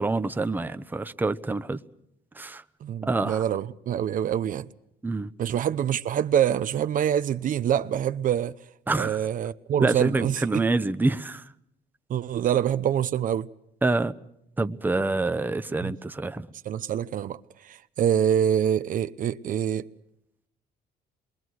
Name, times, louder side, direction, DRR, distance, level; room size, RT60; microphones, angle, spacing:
voice 1, 0.0-1.8 2.4-2.6 3.0-3.4 5.0-5.3 8.9-9.2 9.8-11.4 13.8-14.1 14.6-16.5, right 3 dB, 10° right, 0.9 m, -26 dB
voice 2, 2.8-4.7 5.4-8.5 8.9-10.6 12.1-13.5 15.8-15.9 16.6-19.9, right 9 dB, 50° right, 0.8 m, -25 dB
27.5 x 22.0 x 6.4 m
cardioid pair, 110°, 17 cm